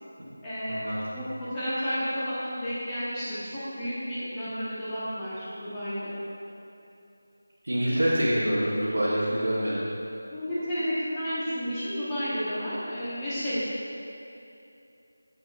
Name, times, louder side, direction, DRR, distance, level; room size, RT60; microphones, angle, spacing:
voice 1, 0.4-0.8 1.1-6.1 10.3-13.6, equal, 15° left, -13 dB, 1.1 m, -31 dB
voice 2, 7.6-9.8, equal, 70° right, -9 dB, 1.2 m, -25 dB
7.3 x 5.9 x 2.5 m, 2.8 s
figure-of-eight pair, 165°, 0 cm